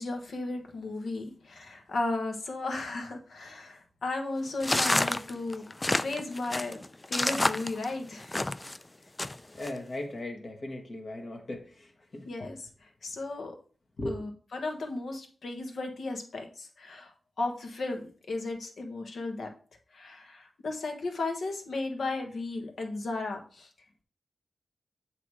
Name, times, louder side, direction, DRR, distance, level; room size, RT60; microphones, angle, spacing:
voice 1, 0.0-5.6 6.0-6.8 7.1-8.3 12.3-12.6 13.0-13.5 14.1-18.0 18.3-19.5 19.9-23.7, left 2 dB, 75° left, 3 dB, 1.3 m, -35 dB
sound 1, 4.6-8.8 9.2-9.7, left 2 dB, 20° left, 0.3 m, -28 dB
voice 2, 9.5-12.3 14.0-14.2, left 1 dB, 50° left, 2 dB, 1.4 m, -38 dB
7.9 x 3.0 x 4.8 m, 0.41 s
cardioid pair, 75°, 0 cm